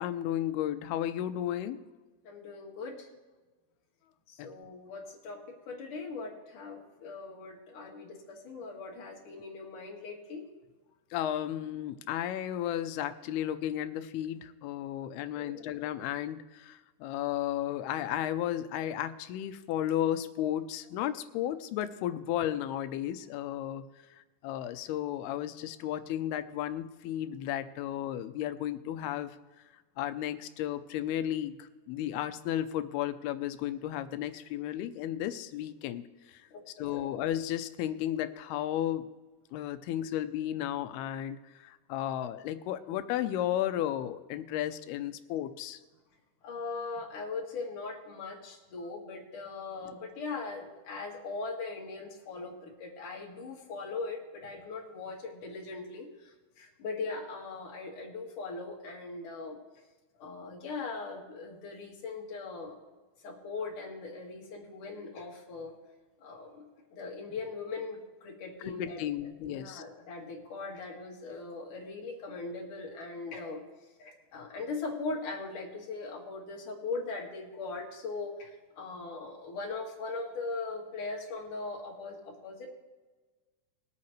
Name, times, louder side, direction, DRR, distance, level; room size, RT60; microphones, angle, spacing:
voice 1, 0.0-1.8 4.4-4.5 11.1-23.9 24.4-29.3 30.0-36.0 36.3-36.4 36.8-39.1 39.5-45.8 68.6-69.8, left 12 dB, 85° left, 11 dB, 2.6 m, -33 dB
voice 2, 2.2-3.1 4.3-10.5 15.4-15.5 36.5-37.1 46.4-59.6 60.2-62.8 63.2-65.7 66.2-66.6 66.9-73.6 74.0-82.7, left 3 dB, 60° left, -2 dB, 3.4 m, -40 dB
21.5 x 8.6 x 3.2 m, 1.2 s
omnidirectional pair, 4.5 m